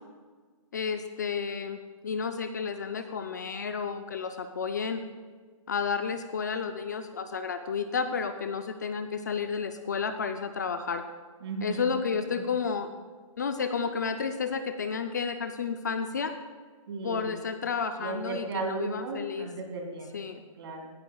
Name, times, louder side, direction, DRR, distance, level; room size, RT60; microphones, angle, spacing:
voice 1, 0.7-1.8 2.0-5.0 5.7-11.0 11.6-12.9 13.4-16.3 17.0-19.5 20.1-20.4, left 5 dB, 30° left, 8 dB, 0.4 m, -31 dB
voice 2, 11.4-11.9 12.3-12.5 16.9-17.3 18.0-20.1 20.6-20.9, right 4 dB, 45° right, 2 dB, 2.3 m, -35 dB
17.0 x 12.0 x 2.3 m, 1.5 s
hypercardioid pair, 180°, 18 cm